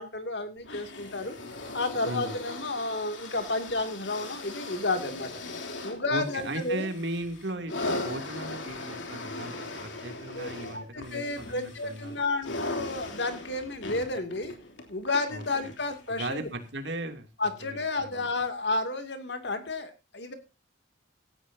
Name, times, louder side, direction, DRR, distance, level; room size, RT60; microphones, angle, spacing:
voice 1, 0.0-1.4 1.7-6.9 10.3-14.5 14.9-16.5 17.4-20.3, left 2 dB, 65° left, 7 dB, 2.6 m, -32 dB
sound 1, 0.6-16.1 16.9-17.0, left 2 dB, 85° left, 3.3 m, -39 dB
voice 2, 2.0-2.3 6.1-12.2 15.3-15.4 16.1-17.3 17.6-18.3, right 1 dB, 70° right, 6 dB, 2.9 m, -37 dB
17.0 x 13.5 x 2.8 m, 0.29 s
head